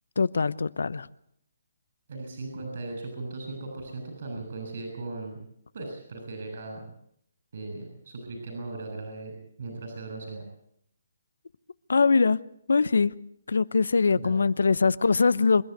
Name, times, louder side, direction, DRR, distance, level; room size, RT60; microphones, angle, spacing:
voice 1, 0.2-1.1 11.9-12.4 12.7-13.1 13.5-15.6, left 4 dB, 80° left, 19 dB, 0.8 m, -22 dB
voice 2, 2.1-5.4 5.7-6.9 7.5-10.4 14.2-14.3, right 3 dB, 60° right, 3 dB, 6.9 m, -38 dB
27.0 x 11.5 x 9.3 m, 0.71 s
hypercardioid pair, 160°, 0 cm